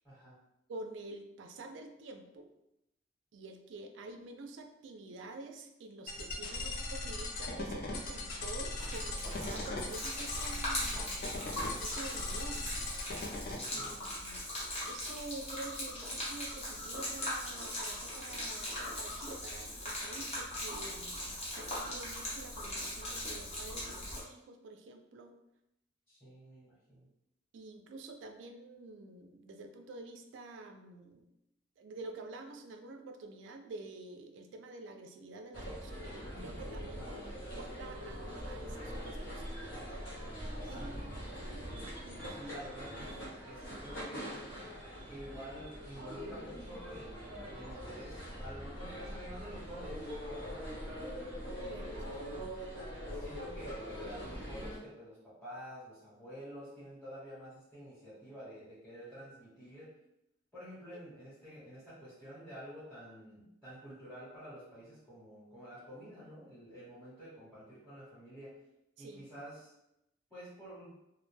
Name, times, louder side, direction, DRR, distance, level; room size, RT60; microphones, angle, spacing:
voice 1, 0.0-0.4 13.6-14.0 26.1-27.1 36.8-37.5 40.6-41.2 42.3-44.3 45.1-50.9 51.6-52.2 53.1-59.9 60.5-68.6 69.0-69.7 70.3-71.0, equal, 5° left, -11 dB, 0.9 m, -49 dB
voice 2, 0.7-2.5 3.3-11.2 11.8-12.7 13.7-14.5 14.8-25.4 27.5-31.3 31.8-36.1 36.4-37.1 37.5-39.4 40.7-41.0 41.4-41.5 42.0-42.2 51.5-52.5 60.9-61.0 69.0-69.2, right 2 dB, 70° right, 5 dB, 0.3 m, -48 dB
sound 1, 6.1-13.6, left 2 dB, 50° left, 0.4 m, -39 dB
Gurgling / Liquid, 8.8-24.2, left 1 dB, 35° left, 0.8 m, -40 dB
sound 2, 35.5-54.8, equal, 80° left, 0.9 m, -43 dB
2.4 x 2.1 x 3.1 m, 0.85 s
head